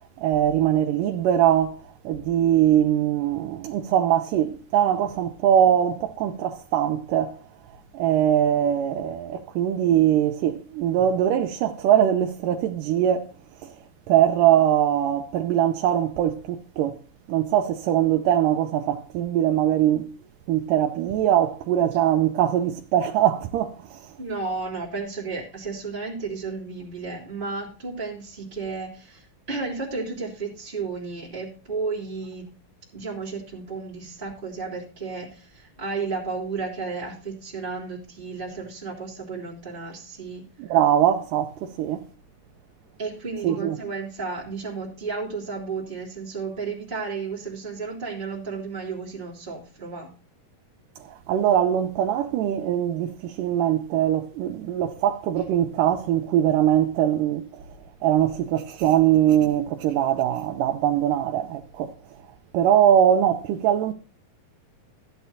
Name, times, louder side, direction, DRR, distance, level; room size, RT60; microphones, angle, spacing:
voice 1, 0.2-1.8 2.1-7.4 7.9-13.3 13.6-13.7 14.1-16.9 17.3-20.1 20.5-24.1 40.6-42.0 43.4-43.8 51.3-57.4 58.0-61.9 62.5-63.9, right 10 dB, 80° right, 2.2 m, -22 dB
voice 2, 24.2-32.5 32.9-40.4 43.0-50.1, right 4 dB, 15° right, 2.4 m, -33 dB
14.0 x 9.1 x 2.7 m
omnidirectional pair, 3.9 m